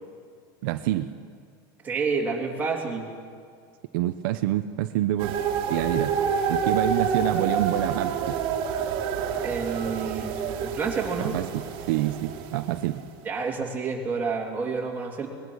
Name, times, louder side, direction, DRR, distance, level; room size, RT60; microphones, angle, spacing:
voice 1, 0.6-1.1 3.9-5.3 5.7-6.2 6.5-8.4 11.2-13.0, right 14 dB, 65° right, 8 dB, 0.8 m, -27 dB
voice 2, 1.8-3.1 9.4-11.3 13.2-15.3, right 4 dB, 15° right, -2 dB, 2.9 m, -29 dB
sound 1, 5.2-13.0, right 6 dB, 45° right, 2.2 m, -28 dB
22.5 x 20.5 x 6.3 m, 2.2 s
supercardioid pair, 160°, 12 cm